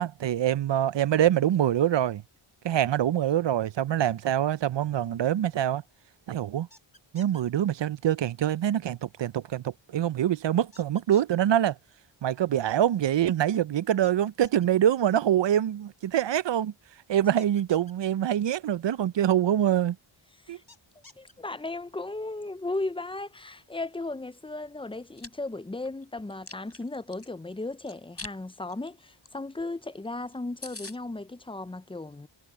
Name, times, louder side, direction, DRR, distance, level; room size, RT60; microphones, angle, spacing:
voice 1, 0.0-2.2 2.6-5.8 6.3-6.7 7.1-11.8 12.2-16.7 17.1-20.0 20.5-20.6, right 11 dB, 60° right, 0.5 m, -25 dB
sound 1, 6.7-7.4 10.7-11.4 14.0-14.7 17.4-17.9 20.7-21.3, left 2 dB, 45° left, 7.5 m, -53 dB
voice 2, 21.2-32.3, left 2 dB, 10° left, 0.5 m, -36 dB
Chewing mastication, 24.9-25.3 25.8-27.3 27.9-28.4 28.7-28.9 29.2-29.3 29.6-29.7 30.0-30.1 30.3-30.4 30.6-31.0, left 2 dB, 30° left, 3.8 m, -42 dB
wide cardioid pair, 70°, 50 cm